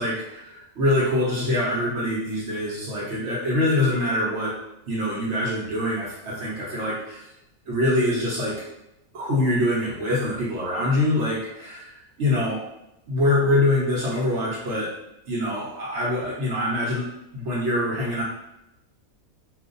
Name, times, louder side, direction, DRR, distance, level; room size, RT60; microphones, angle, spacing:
voice 1, 0.0-4.5 4.9-7.2 7.7-8.5 9.1-12.6 13.1-14.9 15.3-17.1 17.3-18.2, left 1 dB, 60° right, -6 dB, 1.1 m, -24 dB
2.4 x 2.4 x 3.8 m, 0.86 s
omnidirectional pair, 1.5 m